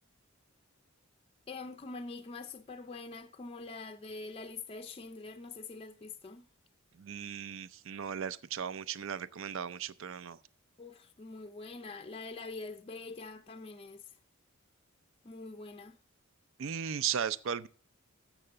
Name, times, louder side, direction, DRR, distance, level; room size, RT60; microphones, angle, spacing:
voice 1, 1.5-6.5 10.8-14.0 15.2-16.0, left 3 dB, 25° left, 0.4 m, -44 dB
voice 2, 7.0-10.4 16.6-17.7, right 8 dB, 65° right, 0.5 m, -36 dB
7.7 x 6.0 x 6.6 m
head